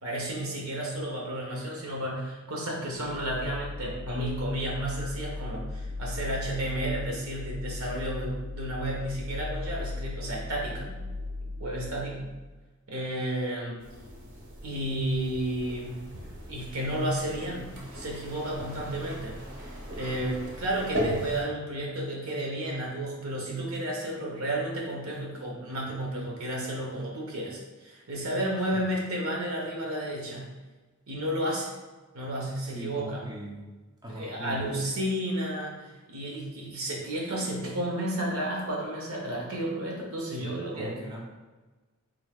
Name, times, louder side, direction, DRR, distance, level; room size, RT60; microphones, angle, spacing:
voice 1, 0.0-11.0 11.6-12.3 12.9-13.8 14.6-16.0 16.5-30.5 31.1-31.7 32.1-33.2 34.1-40.9, right 1 dB, 80° right, -2 dB, 1.0 m, -32 dB
sound 1, 3.0-12.6, left 2 dB, 45° left, 0.3 m, -37 dB
sound 2, 13.8-21.4, equal, 55° right, 0.9 m, -38 dB
voice 2, 32.6-33.7 34.0-34.8 36.3-36.5 40.3-41.2, right 1 dB, 20° right, -3 dB, 0.4 m, -41 dB
3.6 x 2.7 x 3.6 m, 1.2 s
head